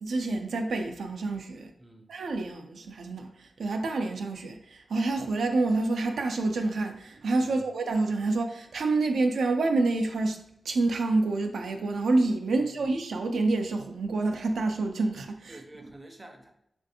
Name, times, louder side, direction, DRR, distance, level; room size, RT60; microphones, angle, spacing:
voice 1, 0.0-1.7 2.1-15.6, right 3 dB, 85° right, 0.3 m, -28 dB
voice 2, 1.8-2.1 7.4-7.7 12.6-12.9 15.5-16.5, right 1 dB, 15° right, 0.4 m, -49 dB
3.3 x 2.5 x 2.7 m
wide cardioid pair, 105°, 0 cm